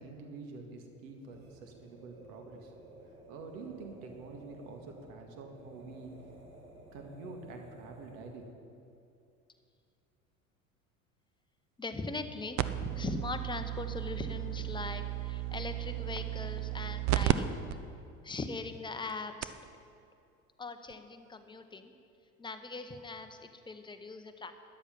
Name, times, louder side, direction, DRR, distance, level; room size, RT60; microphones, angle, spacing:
voice 1, 0.0-2.7 3.3-6.1 6.9-8.5, right 3 dB, 55° right, 3 dB, 2.1 m, -47 dB
sound 1, 1.1-8.5, right 2 dB, 80° right, 2.7 m, -54 dB
voice 2, 11.8-17.6 18.2-19.8 20.6-21.9 22.4-24.5, left 3 dB, 10° left, 7 dB, 0.9 m, -40 dB
sound 2, 12.6-17.3 17.7-17.8 18.4-18.5 19.1-19.2 19.4-19.7 20.9-21.0, right 15 dB, 40° right, 0.6 m, -33 dB
13.0 x 10.5 x 5.6 m, 2.5 s
figure-of-eight pair, 70°, 43 cm